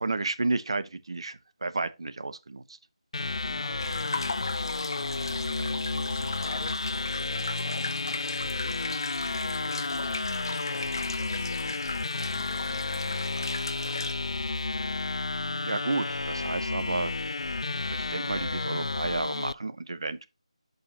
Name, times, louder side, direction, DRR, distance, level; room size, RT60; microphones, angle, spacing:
voice 1, 0.0-2.8 3.8-3.9 15.6-17.2 17.9-20.3, right 3 dB, 50° right, 1.1 m, -32 dB
sound 1, 3.1-19.5, left 3 dB, 60° left, 0.3 m, -32 dB
voice 2, 3.5-4.2 4.6-6.8 7.2-8.9 9.3-11.8 12.3-13.9, left 5 dB, 15° left, 1.3 m, -48 dB
sound 2, 3.8-14.1, left 3 dB, 40° left, 0.9 m, -37 dB
11.0 x 5.4 x 2.8 m
figure-of-eight pair, 175°, 3 cm